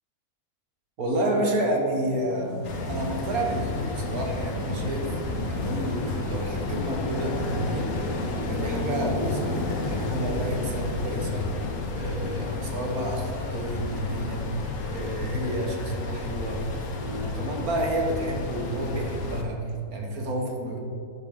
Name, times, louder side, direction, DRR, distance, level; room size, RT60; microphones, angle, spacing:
voice 1, 1.0-2.5 2.9-20.8, right 1 dB, 70° right, 0 dB, 1.6 m, -30 dB
sound 1, 2.0-10.9, left 2 dB, 10° left, 1.8 m, -40 dB
sound 2, 2.6-19.4, left 3 dB, 60° left, 1.2 m, -31 dB
8.4 x 6.3 x 3.6 m, 2.4 s
omnidirectional pair, 1.6 m